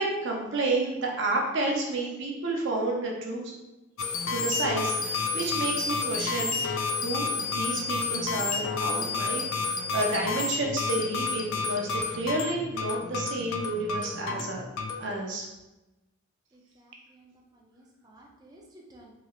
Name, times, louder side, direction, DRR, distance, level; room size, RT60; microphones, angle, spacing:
voice 1, 0.0-3.5 4.3-6.6 6.9-7.3 7.5-14.7 15.0-15.5, right 2 dB, 60° right, -1 dB, 0.6 m, -30 dB
sound 1, 4.0-15.0, left 4 dB, 75° left, 0.3 m, -30 dB
voice 2, 16.5-19.1, right 1 dB, 20° right, -1 dB, 0.4 m, -55 dB
3.2 x 2.9 x 2.4 m, 1.0 s
head